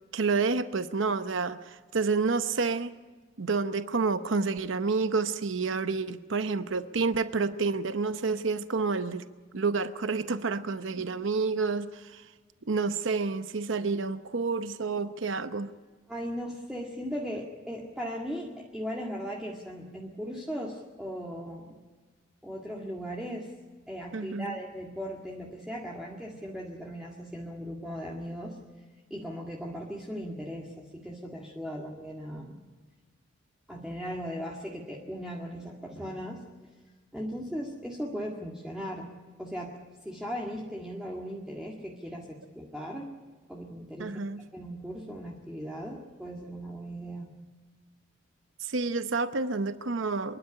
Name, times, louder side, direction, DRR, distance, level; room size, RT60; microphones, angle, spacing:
voice 1, 0.1-2.9 3.4-9.2 9.5-12.3 12.7-15.7 24.1-24.6 44.0-44.4 48.6-50.4, right 4 dB, 70° right, 11 dB, 0.8 m, -29 dB
voice 2, 16.1-21.8 22.4-23.5 23.9-28.6 29.1-32.6 33.7-36.4 37.1-39.1 39.4-39.7 40.0-43.1 43.5-44.2 44.5-47.3, equal, 5° right, -3 dB, 1.9 m, -38 dB
27.0 x 12.0 x 10.0 m, 1.4 s
head